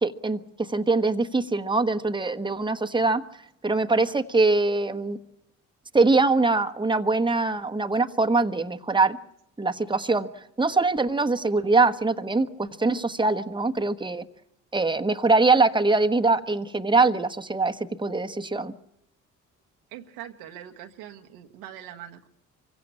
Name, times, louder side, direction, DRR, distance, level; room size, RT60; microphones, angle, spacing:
voice 1, 0.0-3.2 3.6-5.2 5.9-9.2 9.6-10.3 10.6-14.2 14.7-18.7, right 3 dB, 15° right, 6 dB, 1.2 m, -23 dB
voice 2, 19.9-22.3, right 11 dB, 80° right, 4 dB, 1.3 m, -42 dB
24.5 x 16.5 x 8.7 m, 0.81 s
hypercardioid pair, 50°, 37 cm